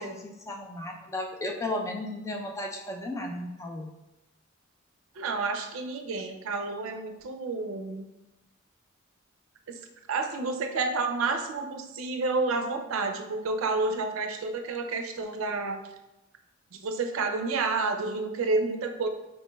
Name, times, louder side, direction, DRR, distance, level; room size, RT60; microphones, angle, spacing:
voice 1, 0.0-3.9, left 1 dB, 15° left, 2 dB, 0.3 m, -35 dB
voice 2, 5.2-8.0 9.7-9.8 10.1-15.8 16.7-19.1, right 3 dB, 70° right, 5 dB, 0.4 m, -30 dB
4.2 x 3.1 x 2.2 m, 0.96 s
head